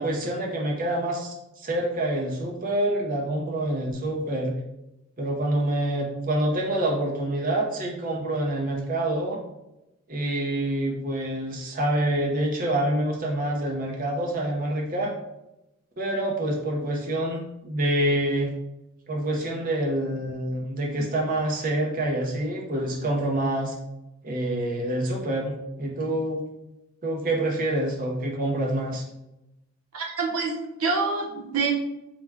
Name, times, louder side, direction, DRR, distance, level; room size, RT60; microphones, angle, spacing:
voice 1, 0.0-4.5 5.2-9.4 10.1-15.1 16.0-18.5 19.1-23.7 24.2-26.4 27.0-29.0, right 1 dB, 40° right, -1 dB, 0.7 m, -27 dB
voice 2, 29.9-31.7, right 4 dB, 90° right, 1 dB, 0.8 m, -26 dB
4.8 x 2.2 x 3.5 m, 0.90 s
head